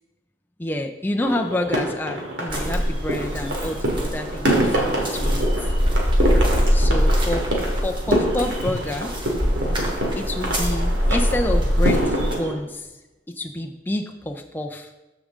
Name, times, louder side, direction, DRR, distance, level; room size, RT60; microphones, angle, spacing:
voice 1, 0.6-5.7 6.7-7.5 7.7-9.1 10.2-12.9 13.3-14.9, left 1 dB, 10° left, 3 dB, 0.5 m, -28 dB
sound 1, 1.2-12.5, right 1 dB, 80° right, 2.1 m, -26 dB
sound 2, 2.5-12.3, equal, 25° right, 1.4 m, -23 dB
13.5 x 5.0 x 3.6 m, 1.0 s
head